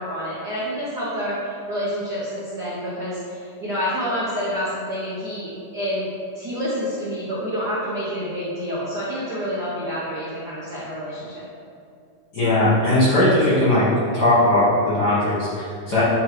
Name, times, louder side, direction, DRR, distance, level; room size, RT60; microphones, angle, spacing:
voice 1, 0.0-11.4, equal, 80° right, -8 dB, 0.9 m, -28 dB
voice 2, 12.3-13.9 14.1-16.0, left 1 dB, 45° left, -11 dB, 1.4 m, -18 dB
8.1 x 3.1 x 4.8 m, 2.3 s
omnidirectional pair, 3.5 m